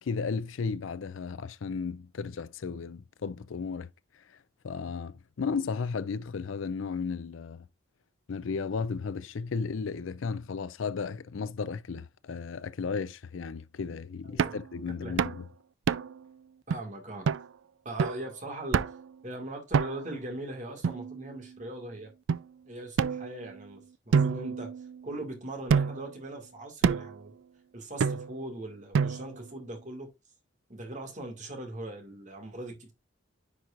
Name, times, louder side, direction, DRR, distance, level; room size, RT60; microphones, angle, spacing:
voice 1, 0.0-3.9 4.6-7.7 8.3-15.5, left 5 dB, 80° left, 0.5 m, -34 dB
voice 2, 14.2-14.6 15.0-15.2 16.7-17.3 17.8-18.9 19.2-22.1 22.7-24.7 25.0-27.3 27.7-30.1 30.7-32.9, right 1 dB, 40° right, 2.0 m, -40 dB
sound 1, 14.4-14.7 15.2-15.4 15.9-16.2 16.7-16.8 17.3-17.5 18.0-18.3 18.7-19.1 19.7-20.2 20.8-21.6 22.3-22.4 23.0-23.7 24.1-25.2 25.7-26.1 26.8-27.2 28.0-28.5 28.9-29.5, right 6 dB, 70° right, 0.3 m, -28 dB
10.0 x 4.7 x 2.5 m
head